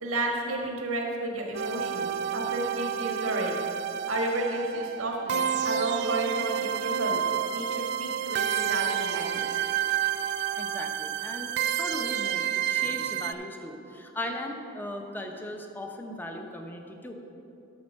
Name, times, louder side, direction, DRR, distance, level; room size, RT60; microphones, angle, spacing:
voice 1, 0.0-3.5 4.1-7.2 7.5-9.4, right 1 dB, 90° right, 0 dB, 1.5 m, -32 dB
sound 1, 1.5-13.3, right 9 dB, 55° right, 0.3 m, -30 dB
voice 2, 10.6-17.1, left 1 dB, 10° left, 3 dB, 0.7 m, -38 dB
12.0 x 4.3 x 6.3 m, 2.9 s
head